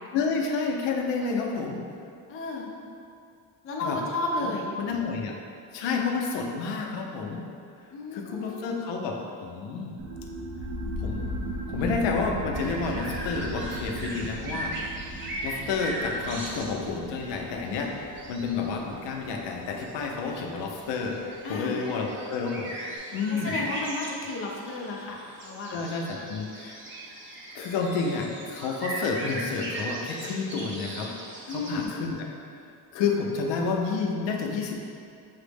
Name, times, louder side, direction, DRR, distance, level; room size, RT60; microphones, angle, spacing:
voice 1, 0.1-1.8 3.8-4.0 4.4-4.5 4.8-5.4 5.7-7.4 8.1-9.9 11.0-11.2 11.7-14.7 15.4-17.9 18.3-22.7 23.1-23.6 25.7-26.8 27.5-31.2 31.5-32.2 32.9-34.8, left 4 dB, 90° left, 1 dB, 0.6 m, -30 dB
voice 2, 2.3-2.7 3.6-4.7 7.9-8.8 21.4-21.8 23.3-25.8 31.5-31.9, left 2 dB, 35° left, -2 dB, 0.4 m, -33 dB
sound 1, 10.0-21.1, right 1 dB, 80° right, 0.6 m, -37 dB
sound 2, 12.5-31.9, right 1 dB, 30° right, 0.5 m, -39 dB
5.7 x 2.0 x 3.3 m, 2.4 s
cardioid pair, 155°, 42 cm